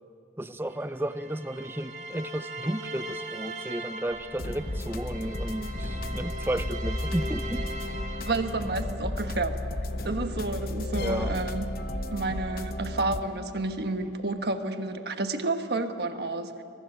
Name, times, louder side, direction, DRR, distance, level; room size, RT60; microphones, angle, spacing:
voice 1, 0.4-7.7 11.0-11.4, right 1 dB, 10° right, 13 dB, 0.5 m, -33 dB
sound 1, 0.6-9.1 9.9-13.2, right 2 dB, 40° right, 1.7 m, -41 dB
Car, 4.1-10.4, equal, 65° left, 5.1 m, -44 dB
sound 2, 4.4-13.2, left 1 dB, 50° left, 1.0 m, -33 dB
voice 2, 8.2-9.6 10.0-11.6 12.1-16.6, right 2 dB, 60° right, 7 dB, 1.4 m, -30 dB
23.5 x 20.5 x 8.9 m, 2.6 s
head